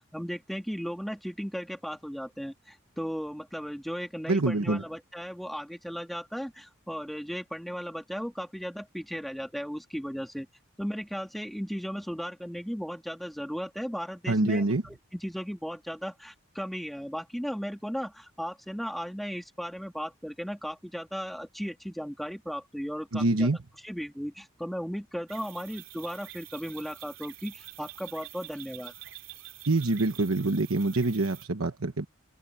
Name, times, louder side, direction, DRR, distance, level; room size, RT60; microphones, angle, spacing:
voice 1, 0.0-10.5 10.8-23.5 23.8-28.9, equal, ahead, 2.6 m, -36 dB
voice 2, 4.3-4.8 14.3-14.8 23.1-23.6 29.7-32.1, right 2 dB, 85° right, 1.1 m, -25 dB
sound 1, 25.3-31.4, right 14 dB, 70° right, 2.8 m, -47 dB
open air
head